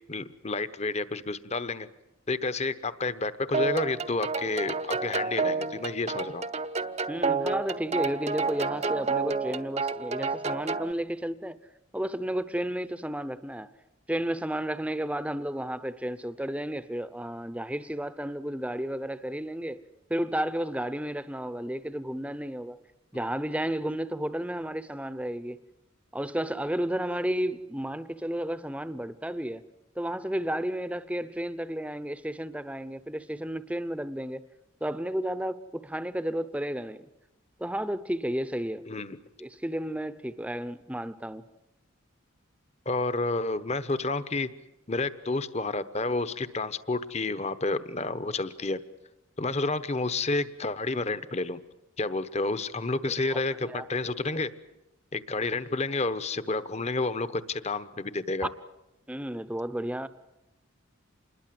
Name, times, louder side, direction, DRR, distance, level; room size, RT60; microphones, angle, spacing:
voice 1, 0.1-1.9 2.3-6.4 38.9-39.2 42.9-44.5 44.9-48.8 49.4-51.6 52.0-54.5 55.1-58.5, left 3 dB, 30° left, 1.1 m, -30 dB
sound 1, 3.5-10.9, right 4 dB, 30° right, 0.8 m, -30 dB
voice 2, 7.1-11.6 11.9-13.7 14.1-19.8 20.1-22.8 23.1-25.6 26.1-29.6 30.0-34.5 34.8-37.1 37.6-38.9 39.4-41.4 53.1-53.9 59.1-60.1, right 1 dB, 5° right, 0.8 m, -32 dB
27.5 x 21.0 x 7.8 m
head